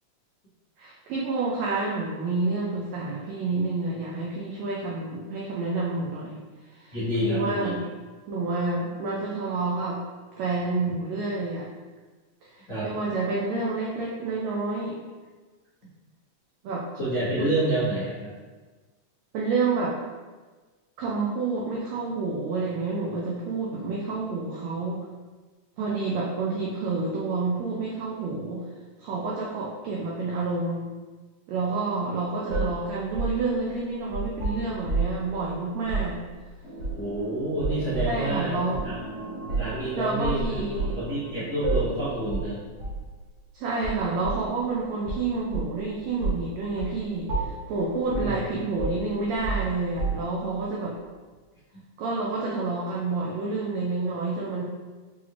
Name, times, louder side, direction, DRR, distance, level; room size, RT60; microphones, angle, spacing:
voice 1, 0.8-6.4 6.7-6.9 7.2-7.8 8.3-10.0 10.4-11.7 12.4-15.0 16.6-16.9 17.4-17.5 19.3-20.0 21.0-25.0 25.8-28.6 29.0-30.9 31.5-36.2 38.1-38.9 39.9-41.0 43.5-50.9 52.0-54.6, right 3 dB, 90° right, -3 dB, 1.5 m, -29 dB
voice 2, 6.9-7.8 12.7-12.9 16.9-18.3 36.9-39.0 39.6-40.6 40.9-42.6 48.1-48.4, right 1 dB, 80° left, -13 dB, 0.7 m, -28 dB
sound 1, 32.5-35.3 35.8-36.1 36.8-37.2 37.6-38.2 38.7-38.9 39.5-39.8 40.2-41.0 41.6-42.0 42.3-42.5 42.8-43.0 43.8-44.5 45.1-45.8 46.2-46.5 46.8-47.0 47.3-47.7 48.1-48.4 48.8-50.4, right 3 dB, 65° right, 2.0 m, -30 dB
sound 2, 36.6-42.4, right 2 dB, 60° left, 1.0 m, -40 dB
5.9 x 3.0 x 2.4 m, 1.3 s
omnidirectional pair, 3.7 m